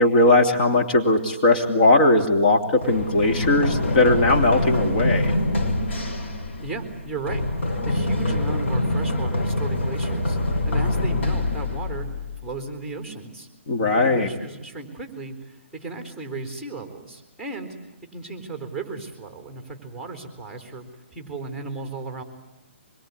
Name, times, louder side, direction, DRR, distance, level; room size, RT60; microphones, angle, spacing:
voice 1, 0.0-5.3 13.7-14.3, left 2 dB, 45° left, 4 dB, 2.8 m, -19 dB
Run, 2.8-12.6, left 1 dB, 65° left, 6.1 m, -25 dB
voice 2, 6.6-7.4 7.8-12.1 12.4-13.5 13.9-17.8 18.1-22.2, right 3 dB, 5° left, 5 dB, 3.8 m, -35 dB
25.5 x 23.0 x 9.7 m, 0.99 s
hypercardioid pair, 155°, 7 cm